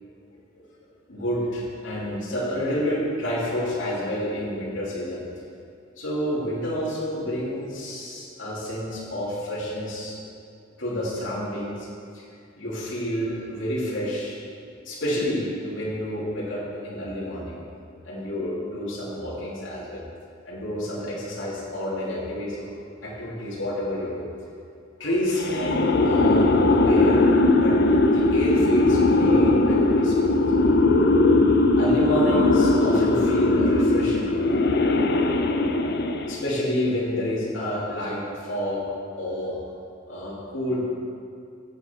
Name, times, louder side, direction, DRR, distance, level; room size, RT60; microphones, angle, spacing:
voice 1, 1.1-5.2 5.9-10.2 10.8-11.9 12.1-12.2 12.6-14.4 14.8-17.6 18.0-20.0 20.4-22.7 23.0-24.3 25.0-27.2 27.5-27.8 28.0-30.2 31.7-34.4 35.7-35.9 36.3-38.9 39.2-39.5 40.1-40.8, equal, 75° left, -7 dB, 3.0 m, -29 dB
sound 1, 25.3-36.5, left 2 dB, 55° left, 0.7 m, -19 dB
14.0 x 8.0 x 4.6 m, 2.4 s
head